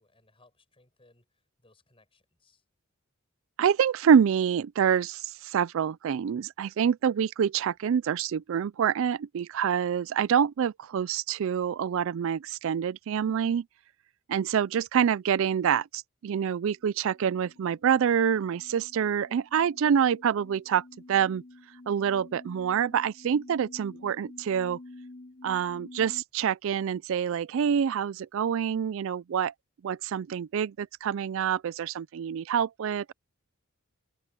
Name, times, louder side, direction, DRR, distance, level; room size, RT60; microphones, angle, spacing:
voice 1, 0.0-2.6, left 2 dB, 25° left, 7.7 m, -64 dB
voice 2, 3.6-13.6 14.3-20.8 21.1-21.4 21.9-24.8 25.4-29.5 29.8-33.1, right 8 dB, 65° right, 0.4 m, -26 dB
sound 1, 16.8-26.2, left 2 dB, 45° left, 2.7 m, -50 dB
open air
head